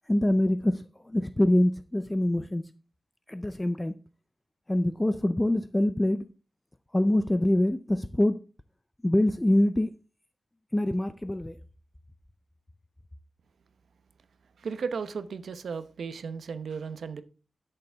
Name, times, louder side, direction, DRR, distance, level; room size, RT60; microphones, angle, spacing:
voice 1, 0.1-2.6 3.3-3.9 4.7-6.2 6.9-8.4 9.0-9.9 10.7-11.6, left 1 dB, 10° left, 0.4 m, -25 dB
voice 2, 14.6-17.2, right 5 dB, 90° right, 0.8 m, -35 dB
12.5 x 6.8 x 3.5 m
wide cardioid pair, 155°, 0 cm